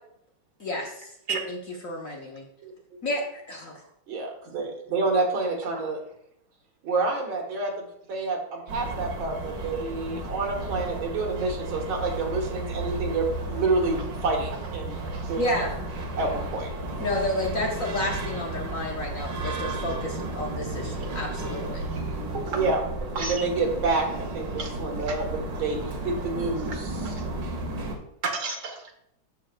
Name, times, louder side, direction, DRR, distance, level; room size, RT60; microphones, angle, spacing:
voice 1, 0.6-1.1 1.8-2.4 3.0-3.8 15.4-15.7 17.0-21.8, left 1 dB, 55° left, 0 dB, 1.1 m, -31 dB
voice 2, 4.1-6.0 6.8-15.0 15.3-15.4 16.1-16.7 22.5-22.8 23.2-26.8, right 3 dB, 85° right, 0 dB, 2.2 m, -28 dB
sound 1, 8.7-28.0, right 2 dB, 70° right, 1.8 m, -33 dB
voice 3, 24.6-25.3 26.6-26.8 27.0-27.3 28.2-28.9, right 4 dB, 50° right, 3 dB, 1.2 m, -33 dB
13.0 x 4.8 x 2.3 m, 0.76 s
omnidirectional pair, 2.1 m